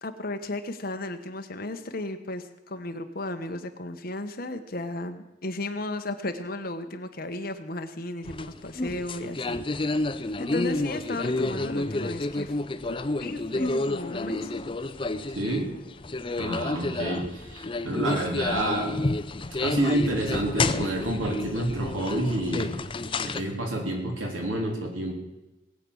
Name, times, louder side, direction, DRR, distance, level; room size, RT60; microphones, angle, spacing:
voice 1, 0.0-9.6 10.4-12.6 12.9-14.5, left 2 dB, 45° left, 7 dB, 1.2 m, -34 dB
sound 1, 8.2-23.4, left 2 dB, 25° left, 0.5 m, -30 dB
voice 2, 15.3-15.7 16.4-19.1 19.6-22.8 23.2-25.2, right 1 dB, 85° right, 1 dB, 3.7 m, -28 dB
20.0 x 8.5 x 6.3 m, 1.0 s
head